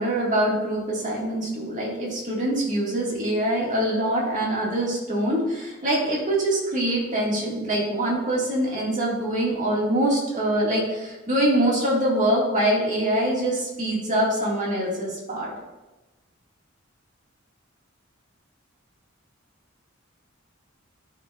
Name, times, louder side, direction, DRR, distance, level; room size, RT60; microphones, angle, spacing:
voice 1, 0.0-15.5, right 1 dB, 40° right, -4 dB, 2.0 m, -24 dB
11.5 x 4.7 x 2.5 m, 1.1 s
head